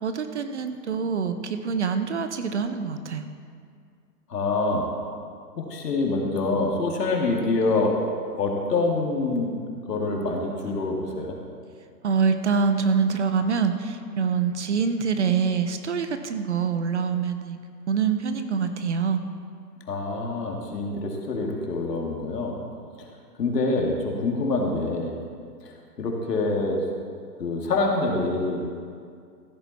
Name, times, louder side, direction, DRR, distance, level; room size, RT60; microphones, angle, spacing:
voice 1, 0.0-3.3 12.0-17.6 17.9-19.2, right 6 dB, 45° right, 9 dB, 0.6 m, -25 dB
voice 2, 4.3-4.9 5.6-8.1 8.4-9.6 9.9-11.4 19.9-22.5 23.4-25.2 26.0-26.8 27.4-28.6, left 3 dB, 70° left, 0 dB, 2.4 m, -25 dB
14.5 x 8.8 x 4.1 m, 2.2 s
hypercardioid pair, 160°, 50 cm